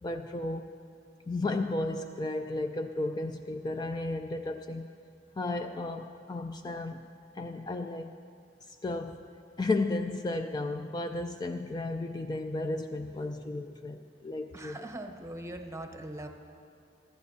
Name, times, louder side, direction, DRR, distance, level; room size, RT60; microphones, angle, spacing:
voice 1, 0.0-0.7 1.3-4.9 5.4-7.1 7.3-8.1 8.8-9.2 9.6-14.8, left 2 dB, 25° left, 6 dB, 0.3 m, -33 dB
voice 2, 14.5-16.3, right 1 dB, 15° right, 4 dB, 0.9 m, -41 dB
23.0 x 12.0 x 2.8 m, 2.5 s
head